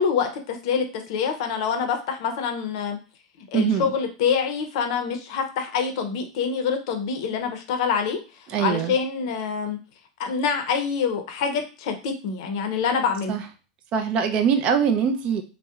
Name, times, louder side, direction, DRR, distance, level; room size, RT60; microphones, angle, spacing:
voice 1, 0.0-3.0 3.5-8.2 8.6-9.8 10.2-13.4, left 6 dB, 65° left, 6 dB, 0.5 m, -26 dB
voice 2, 3.5-3.9 8.5-9.0 13.3-13.4 13.9-15.4, right 7 dB, 40° right, 6 dB, 0.4 m, -22 dB
2.7 x 2.0 x 2.3 m, 0.34 s
supercardioid pair, 135°, 3 cm